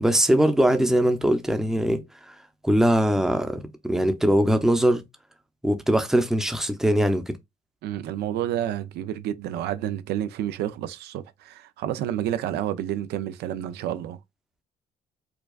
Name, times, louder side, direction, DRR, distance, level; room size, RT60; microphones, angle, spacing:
voice 1, 0.0-2.3 2.6-5.0 5.6-7.4, right 1 dB, 5° right, 0.7 m, -21 dB
voice 2, 7.8-14.2, right 11 dB, 75° right, 0.5 m, -30 dB
4.7 x 2.3 x 2.3 m
cardioid pair, 110°, 17 cm